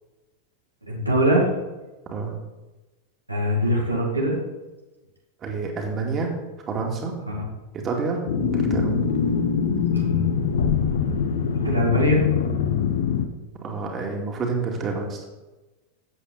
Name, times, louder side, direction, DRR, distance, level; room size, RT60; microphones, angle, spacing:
voice 1, 0.8-1.5 3.3-4.4 7.3-7.4 9.9-10.3 11.5-12.2, equal, 85° right, -2 dB, 2.3 m, -22 dB
voice 2, 5.4-6.3 6.7-7.1 7.7-8.9 13.6-15.2, right 4 dB, 25° right, 1 dB, 2.4 m, -28 dB
sound 1, 8.3-13.3, left 6 dB, 60° left, 0.9 m, -23 dB
13.5 x 8.2 x 4.1 m, 1.1 s
figure-of-eight pair, 90°, 0 cm